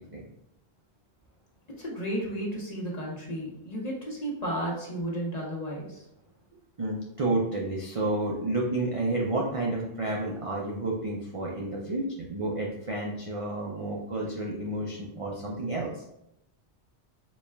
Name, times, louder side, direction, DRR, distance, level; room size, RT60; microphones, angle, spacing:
voice 1, 1.8-6.1, right 1 dB, 40° left, -4 dB, 1.0 m, -33 dB
voice 2, 6.8-16.0, right 2 dB, 45° right, -3 dB, 0.4 m, -30 dB
4.1 x 2.3 x 3.3 m, 0.82 s
omnidirectional pair, 1.1 m